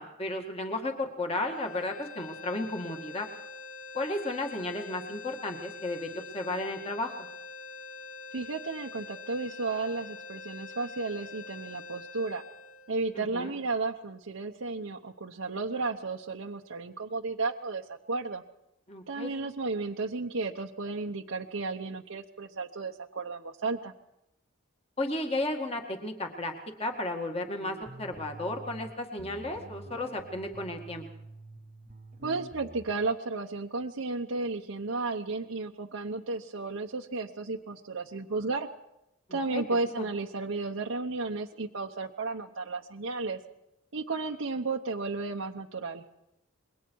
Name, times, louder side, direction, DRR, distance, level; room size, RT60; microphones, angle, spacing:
voice 1, 0.0-3.3 3.9-7.1 13.1-13.6 18.9-19.3 25.0-26.5 26.8-31.1 39.3-39.6 39.9-40.1, left 2 dB, 30° left, 3 dB, 2.0 m, -34 dB
sound 1, 1.4-13.6, left 4 dB, 80° left, 1.5 m, -45 dB
voice 2, 8.3-12.4 12.9-18.4 19.1-23.9 32.2-38.7 39.3-43.4 43.9-46.0, right 3 dB, 75° right, 1 dB, 1.0 m, -33 dB
sound 2, 27.6-28.9 29.2-33.0, right 2 dB, 40° right, 1.0 m, -47 dB
27.0 x 22.5 x 4.7 m, 0.87 s
head